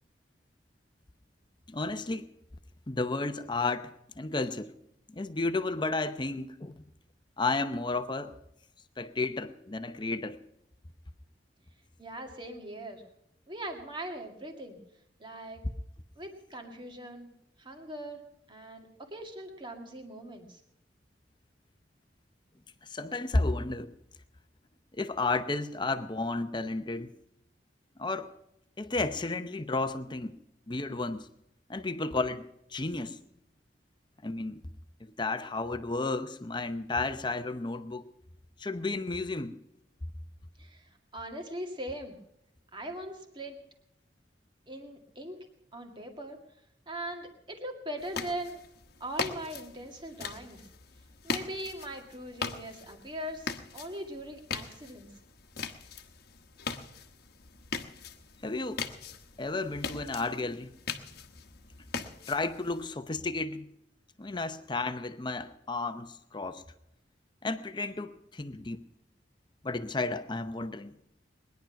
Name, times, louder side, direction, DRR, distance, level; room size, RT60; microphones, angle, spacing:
voice 1, 1.7-2.3 2.9-4.7 5.1-6.8 7.4-8.4 9.0-10.4 22.9-23.9 24.9-27.1 28.0-28.3 28.8-30.4 30.7-31.3 31.7-33.2 34.2-34.6 35.0-38.0 38.6-39.6 58.4-58.9 59.4-60.7 62.3-63.7 64.2-66.6 67.4-68.8 69.6-70.9, left 3 dB, 25° left, 0.8 m, -32 dB
voice 2, 12.0-13.0 13.5-14.8 15.2-15.6 16.2-17.3 17.6-18.2 18.5-20.6 40.6-42.2 42.7-43.6 44.7-45.4 45.7-46.4 46.9-48.6 49.0-50.6 51.2-55.1, right 1 dB, 25° right, 1.9 m, -40 dB
sound 1, 48.0-62.9, left 5 dB, 60° left, 1.1 m, -40 dB
20.5 x 10.5 x 5.8 m
head